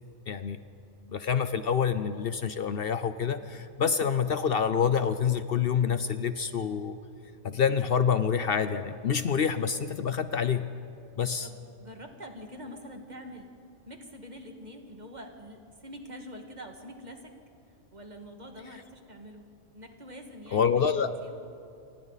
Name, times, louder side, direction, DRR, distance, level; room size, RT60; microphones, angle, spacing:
voice 1, 0.3-0.6 1.1-7.0 7.4-10.7 11.2-11.5 20.5-21.1, left 7 dB, 60° left, 11 dB, 0.8 m, -27 dB
voice 2, 11.4-13.5 13.9-17.3 17.9-21.4, equal, 40° right, 4 dB, 2.0 m, -45 dB
29.0 x 25.5 x 4.1 m, 2.6 s
omnidirectional pair, 1.2 m